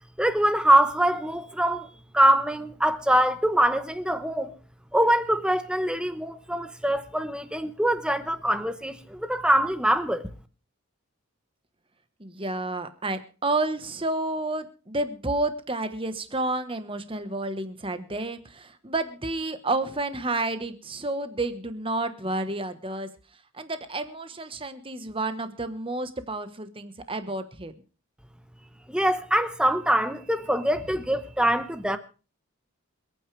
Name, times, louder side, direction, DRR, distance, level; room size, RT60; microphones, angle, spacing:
voice 1, 0.2-1.9 2.1-4.5 4.9-10.2 28.9-32.0, right 1 dB, 5° right, 0.9 m, -23 dB
voice 2, 12.2-23.1 23.5-27.7, right 2 dB, 25° right, 1.2 m, -30 dB
27.5 x 9.2 x 3.3 m
head